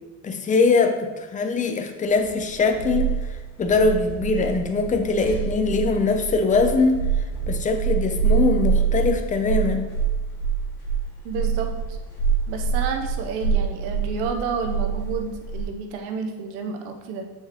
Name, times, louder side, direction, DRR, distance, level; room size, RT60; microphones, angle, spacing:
voice 1, 0.2-3.1 3.6-7.0 7.5-9.9, left 4 dB, 20° left, 6 dB, 0.7 m, -22 dB
sound 1, 2.2-15.7, right 7 dB, 40° left, 2.3 m, -26 dB
voice 2, 11.2-12.0 12.5-17.2, right 5 dB, 85° right, 4 dB, 1.1 m, -30 dB
7.3 x 5.6 x 3.1 m, 1.2 s
cardioid pair, 115°, 37 cm